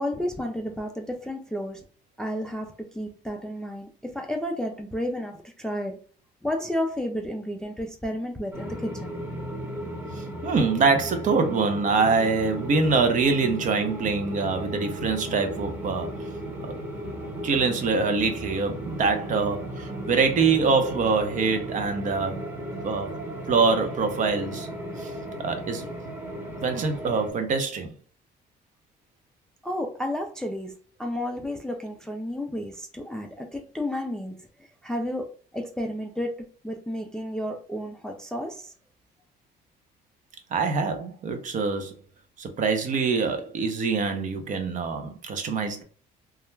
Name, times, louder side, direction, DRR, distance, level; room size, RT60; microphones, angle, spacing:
voice 1, 0.0-1.8 2.2-6.0 6.4-9.1 29.6-30.7 31.0-34.3 34.8-36.3 36.6-38.7, left 1 dB, 5° left, 0.3 m, -32 dB
sound 1, 8.5-27.3, right 1 dB, 10° right, 0.8 m, -35 dB
voice 2, 10.1-16.1 16.6-16.8 17.4-22.4 22.8-23.1 23.5-24.7 25.0-25.1 25.4-25.9 26.6-27.9 40.5-41.9 42.4-45.8, right 4 dB, 50° right, 0.6 m, -24 dB
2.3 x 2.1 x 3.1 m
cardioid pair, 110°, 17 cm